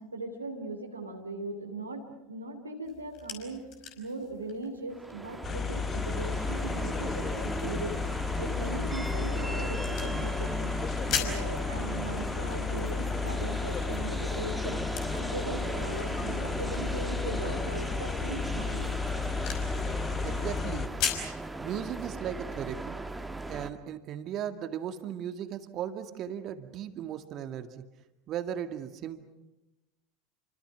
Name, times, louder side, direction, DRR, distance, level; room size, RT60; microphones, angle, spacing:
voice 1, 0.0-3.7 4.0-8.0 8.4-10.7 11.1-14.8 15.1-18.9, right 2 dB, 85° right, 1 dB, 2.8 m, -39 dB
sound 1, 2.8-21.4, left 7 dB, 50° left, 5.3 m, -42 dB
sound 2, 4.9-23.7, right 2 dB, 10° right, 1.7 m, -37 dB
sound 3, 5.4-20.9, left 5 dB, 30° left, 1.1 m, -33 dB
voice 2, 20.2-20.9 21.6-23.0 23.5-27.9 28.3-29.2, right 9 dB, 40° right, 8 dB, 2.1 m, -37 dB
29.5 x 25.5 x 6.1 m, 1.0 s
figure-of-eight pair, 75°, 0 cm